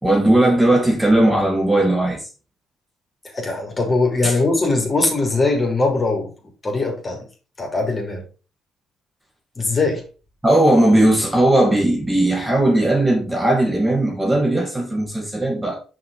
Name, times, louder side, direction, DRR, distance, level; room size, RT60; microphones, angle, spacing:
voice 1, 0.0-2.2 4.2-4.4 10.4-15.9, right 1 dB, 10° right, 2.4 m, -17 dB
voice 2, 3.3-6.3 6.6-7.2 7.6-8.2 9.6-10.0, left 3 dB, 30° left, 3.2 m, -20 dB
6.1 x 4.9 x 4.8 m
cardioid pair, 85°, 0 cm